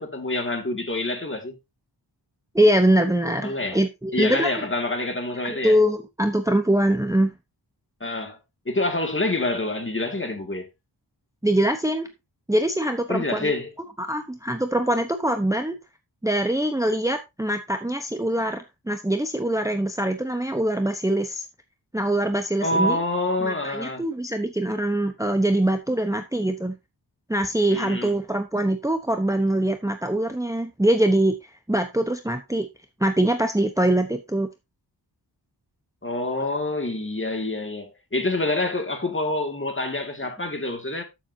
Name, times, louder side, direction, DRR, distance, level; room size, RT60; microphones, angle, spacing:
voice 1, 0.0-1.6 3.4-3.8 4.1-5.8 8.0-8.4 8.7-10.7 13.1-13.7 22.6-24.0 27.7-28.1 36.0-41.0, left 2 dB, 30° left, 2.2 m, -27 dB
voice 2, 2.5-4.5 5.4-7.3 11.4-12.1 12.5-13.5 14.0-15.8 16.2-21.4 21.9-23.0 23.4-26.8 27.3-32.7 33.0-34.5, right 1 dB, 5° right, 0.9 m, -23 dB
12.5 x 7.2 x 2.8 m
wide cardioid pair, 95°, 43 cm